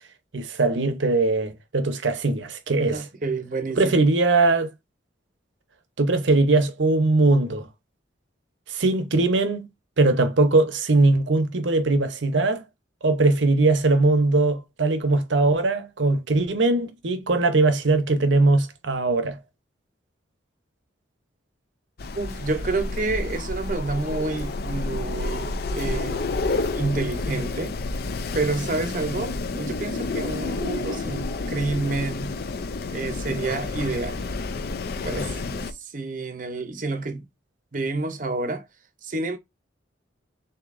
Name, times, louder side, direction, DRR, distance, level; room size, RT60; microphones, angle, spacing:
voice 1, 0.3-3.0 3.8-4.7 6.0-7.7 8.7-9.7 10.0-12.6 13.0-19.4, right 2 dB, 75° right, 0.8 m, -20 dB
voice 2, 2.9-4.0 22.1-26.3 26.7-27.7 28.3-32.3 32.9-34.2 35.0-35.4 35.7-37.2 37.7-38.7 39.0-39.4, right 3 dB, 45° right, 0.7 m, -29 dB
Wind, 22.0-35.7, left 3 dB, 50° left, 0.4 m, -30 dB
6.6 x 2.8 x 2.5 m
head